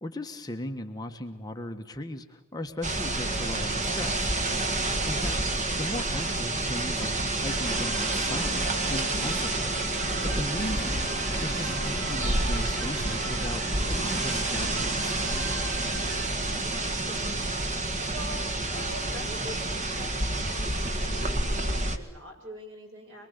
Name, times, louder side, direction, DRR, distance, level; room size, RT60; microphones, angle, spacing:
voice 1, 0.0-4.3 5.1-5.4 5.7-9.7 10.2-15.2, left 1 dB, 20° left, 4 dB, 1.3 m, -37 dB
sound 1, 2.8-22.0, right 2 dB, 35° right, 1.8 m, -29 dB
sound 2, 7.5-16.3, right 2 dB, 80° right, 2.2 m, -42 dB
voice 2, 16.0-17.4 18.1-23.3, equal, 60° right, 2 dB, 6.9 m, -44 dB
24.0 x 23.5 x 8.1 m, 0.99 s
head